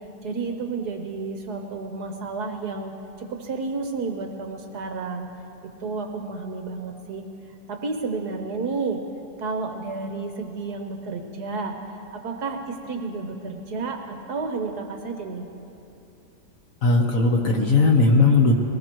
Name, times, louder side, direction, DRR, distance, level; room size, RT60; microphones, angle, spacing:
voice 1, 0.2-5.3 5.8-7.2 7.7-9.0 9.4-15.5, right 4 dB, 60° right, 4 dB, 1.3 m, -31 dB
voice 2, 16.8-18.5, left 3 dB, 50° left, 1 dB, 1.2 m, -18 dB
21.5 x 18.0 x 3.0 m, 2.9 s
omnidirectional pair, 2.2 m